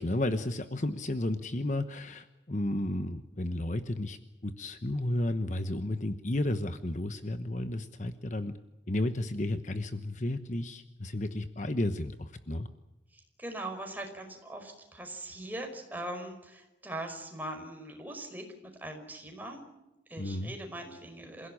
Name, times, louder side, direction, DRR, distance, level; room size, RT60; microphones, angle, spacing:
voice 1, 0.0-8.5 8.9-12.7 20.2-20.5, left 1 dB, 40° left, 9 dB, 1.1 m, -32 dB
voice 2, 13.1-19.6 20.1-21.5, right 1 dB, 10° right, 4 dB, 5.0 m, -41 dB
28.0 x 16.5 x 8.6 m, 1.0 s
head